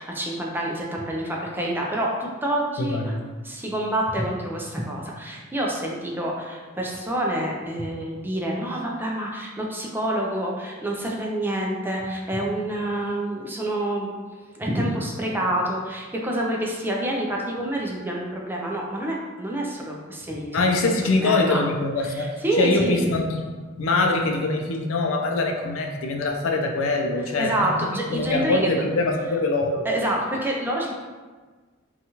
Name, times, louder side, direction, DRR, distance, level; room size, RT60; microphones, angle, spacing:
voice 1, 0.0-3.2 3.4-14.1 14.5-20.8 21.2-21.6 22.0-23.0 27.4-28.7 29.8-30.9, right 1 dB, 10° right, -2 dB, 0.3 m, -27 dB
voice 2, 2.8-3.2 20.5-22.3 22.6-23.4 23.8-27.7 28.1-29.9, left 2 dB, 80° left, 3 dB, 0.4 m, -23 dB
2.8 x 2.3 x 2.8 m, 1.4 s
head